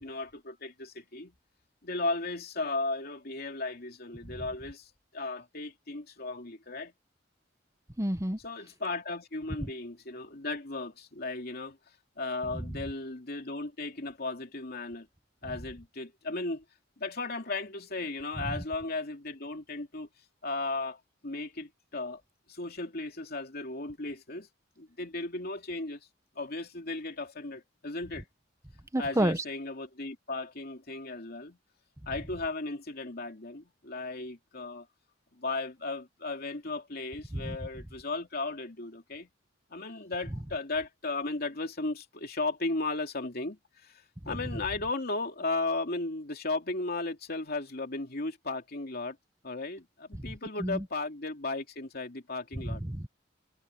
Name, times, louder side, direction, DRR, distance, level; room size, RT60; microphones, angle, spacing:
voice 1, 0.0-1.3 1.8-6.9 8.4-11.8 12.2-15.1 15.4-16.6 17.0-20.1 20.4-22.2 22.5-24.5 24.8-26.0 26.4-28.2 29.0-31.6 32.1-34.9 35.4-39.3 39.7-49.2 49.4-52.8, left 3 dB, 55° left, 2.8 m, -35 dB
voice 2, 8.0-8.4 28.9-29.4 37.3-37.6 50.2-50.3 50.6-50.8 52.6-53.1, right 1 dB, 15° right, 1.2 m, -29 dB
head